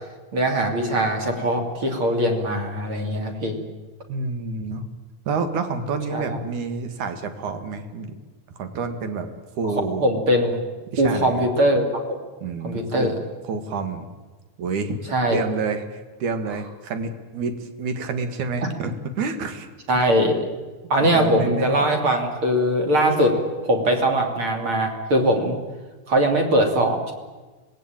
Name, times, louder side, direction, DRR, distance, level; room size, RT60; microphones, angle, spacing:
voice 1, 0.3-3.6 6.1-6.4 10.0-10.6 11.0-11.8 12.6-13.1 15.1-15.4 19.9-20.4 20.9-23.4 23.6-25.6 26.1-27.1, right 1 dB, 45° right, 3 dB, 3.8 m, -21 dB
voice 2, 4.1-4.8 5.3-8.1 8.5-9.3 9.6-10.1 10.9-11.5 12.4-14.1 14.6-15.0 15.3-20.0 21.0-21.8, right 4 dB, 75° right, 8 dB, 3.4 m, -29 dB
26.0 x 19.0 x 9.0 m, 1.3 s
omnidirectional pair, 3.6 m